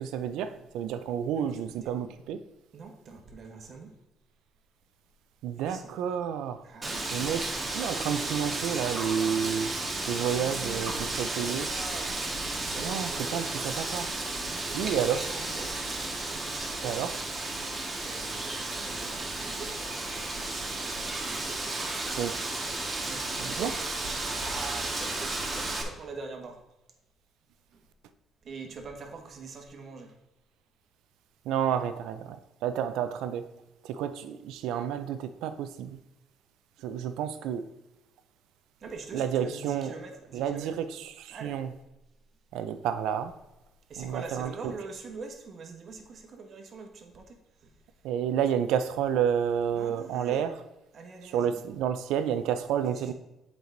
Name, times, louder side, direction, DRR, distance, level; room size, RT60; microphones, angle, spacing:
voice 1, 0.0-2.4 5.4-6.6 7.1-9.7 10.1-11.7 12.8-14.1 14.7-15.3 16.8-17.2 22.1-22.5 23.4-23.7 31.5-33.5 33.9-36.0 36.8-37.7 39.1-39.9 40.3-41.7 42.5-43.3 44.0-44.7 48.0-50.5 51.2-53.1, right 8 dB, 85° right, 0.5 m, -30 dB
voice 2, 2.7-3.9 5.6-5.9 6.6-7.3 9.8-13.9 14.4-17.0 18.0-19.7 20.2-20.3 21.0-21.9 23.1-23.8 24.2-26.6 27.7-27.8 28.4-30.1 38.8-40.8 41.3-41.6 43.9-47.7 49.7-50.4 50.9-51.6 52.9-53.1, right 4 dB, 55° right, 1.4 m, -44 dB
Wind, 6.8-25.8, right 2 dB, 25° right, 1.7 m, -33 dB
7.9 x 4.9 x 3.9 m
cardioid pair, 85°, 0 cm